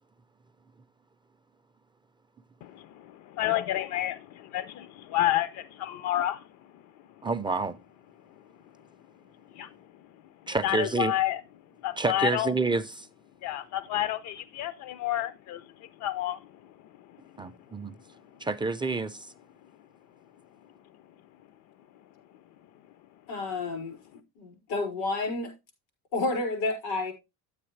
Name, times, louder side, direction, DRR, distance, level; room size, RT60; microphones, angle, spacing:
voice 1, 3.4-4.2 4.5-6.4 9.6-9.7 10.6-11.4 11.8-12.5 13.4-15.6 16.0-16.4, left 13 dB, 60° left, 0.6 m, -29 dB
voice 2, 7.2-7.8 10.5-11.1 12.0-13.1 17.4-18.0 18.4-19.3, right 3 dB, 15° right, 0.4 m, -28 dB
voice 3, 23.3-24.0 24.4-25.5 26.1-27.1, left 3 dB, 90° left, 5.4 m, -30 dB
9.6 x 8.7 x 3.2 m
cardioid pair, 115°, 32 cm